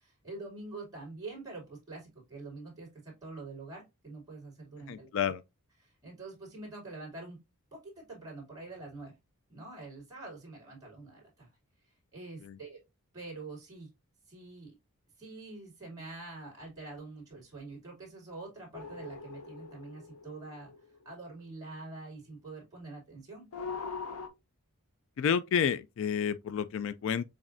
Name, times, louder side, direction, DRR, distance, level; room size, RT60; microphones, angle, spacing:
voice 1, 0.0-5.1 5.8-7.4 7.7-9.2 9.5-11.5 11.8-12.8 13.1-13.9 14.3-14.7 15.2-20.7 21.0-23.5, right 3 dB, 15° right, 2.8 m, -45 dB
voice 2, 4.9-5.4 12.4-12.5 25.2-27.2, left 7 dB, 60° left, 0.3 m, -30 dB
sound 1, 18.7-21.3 23.5-24.3, left 5 dB, 90° left, 0.7 m, -42 dB
7.2 x 2.7 x 2.5 m
head